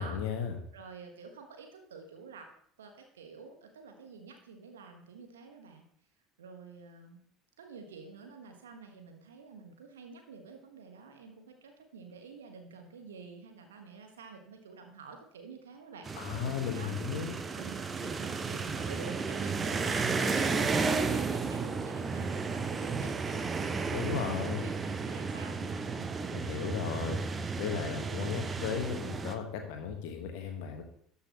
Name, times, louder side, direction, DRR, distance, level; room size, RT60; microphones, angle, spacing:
voice 1, 0.0-0.6 16.1-17.4 23.9-24.7 26.3-27.2 27.6-30.8, left 7 dB, 60° left, 4 dB, 1.4 m, -35 dB
voice 2, 0.7-2.5 2.8-5.8 6.4-7.2 7.6-16.4 16.7-16.9 17.5-26.1, right 5 dB, 70° right, 4 dB, 1.4 m, -49 dB
sound 1, 16.0-29.4, right 4 dB, 25° right, 0.7 m, -33 dB
13.0 x 5.6 x 3.0 m, 0.64 s
figure-of-eight pair, 65°, 0 cm